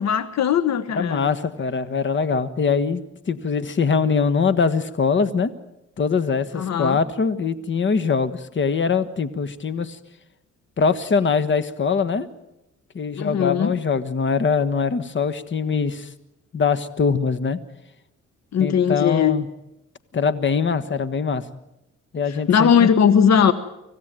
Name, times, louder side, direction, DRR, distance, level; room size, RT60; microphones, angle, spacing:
voice 1, 0.0-1.3 6.5-7.0 13.2-13.8 18.5-19.4 22.3-23.5, left 7 dB, 60° left, 13 dB, 1.2 m, -19 dB
voice 2, 1.0-3.0 3.3-5.5 6.0-10.0 10.8-12.3 12.9-16.1 16.5-17.6 18.6-19.5 20.1-21.5 22.1-22.9, left 5 dB, 40° left, 13 dB, 1.4 m, -22 dB
25.5 x 15.5 x 9.1 m, 0.92 s
cardioid pair, 90°, 30 cm